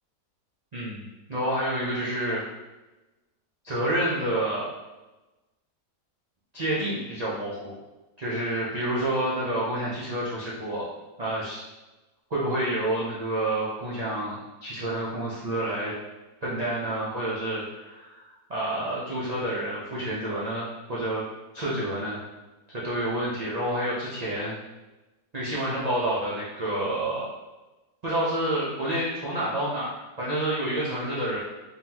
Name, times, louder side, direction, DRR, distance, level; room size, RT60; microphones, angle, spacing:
voice 1, 0.7-1.0 1.3-2.4 3.6-4.7 6.5-7.7 8.2-10.8 11.2-11.6 12.3-15.9 16.4-21.2 21.5-22.2 22.7-24.5 25.3-27.3 28.0-31.4, right 1 dB, 40° right, -8 dB, 0.5 m, -29 dB
3.8 x 3.7 x 2.9 m, 1.1 s
omnidirectional pair, 1.8 m